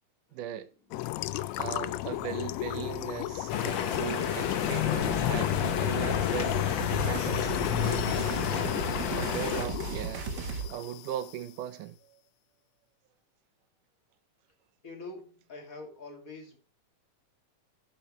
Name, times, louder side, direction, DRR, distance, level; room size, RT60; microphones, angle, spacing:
voice 1, 0.3-0.7 1.3-6.5 6.8-8.8 9.2-12.0, right 11 dB, 85° right, 2.4 m, -39 dB
sound 1, 0.9-11.3, left 16 dB, 85° left, 1.5 m, -32 dB
sound 2, 3.5-9.7, left 7 dB, 60° left, 1.2 m, -32 dB
sound 3, 5.1-10.7, right 5 dB, 55° right, 1.2 m, -37 dB
voice 2, 14.8-16.6, left 3 dB, 30° left, 2.2 m, -44 dB
9.9 x 8.4 x 3.0 m
omnidirectional pair, 3.6 m